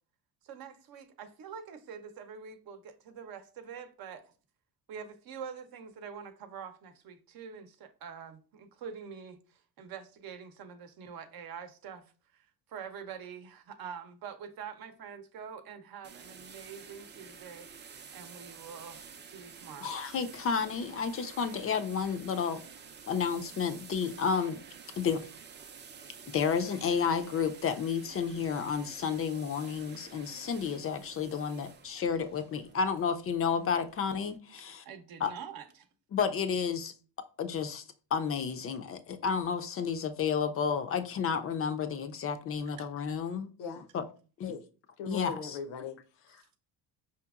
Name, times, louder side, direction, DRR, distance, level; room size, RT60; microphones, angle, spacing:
voice 1, 0.4-4.2 4.9-12.0 12.3-17.7 18.1-19.9 34.9-35.9, right 7 dB, 60° right, 0.7 m, -45 dB
sound 1, 16.0-34.4, right 6 dB, 25° right, 0.4 m, -51 dB
voice 2, 19.8-22.6 23.1-24.6 25.0-25.2 26.3-34.8 35.2-35.3 36.1-36.9 37.4-37.8 38.1-43.5 43.9-44.0 44.4-44.5 45.1-45.6, left 6 dB, 35° left, 0.4 m, -31 dB
voice 3, 43.6-43.9 44.4-44.7 45.0-46.6, left 5 dB, 80° left, 0.7 m, -41 dB
5.0 x 2.9 x 2.3 m
cardioid pair, 100°, 41 cm